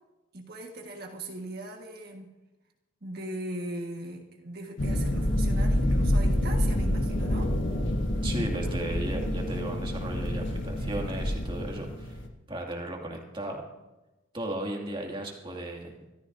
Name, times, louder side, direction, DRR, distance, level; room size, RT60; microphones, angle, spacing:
voice 1, 0.3-2.3 3.0-7.5, right 1 dB, 50° right, 1 dB, 1.6 m, -39 dB
sound 1, 4.8-12.3, left 1 dB, 65° left, 1.4 m, -27 dB
voice 2, 8.2-12.2 12.5-13.6 14.3-16.0, right 1 dB, 25° right, 1 dB, 2.3 m, -35 dB
24.5 x 14.0 x 2.7 m, 1.0 s
head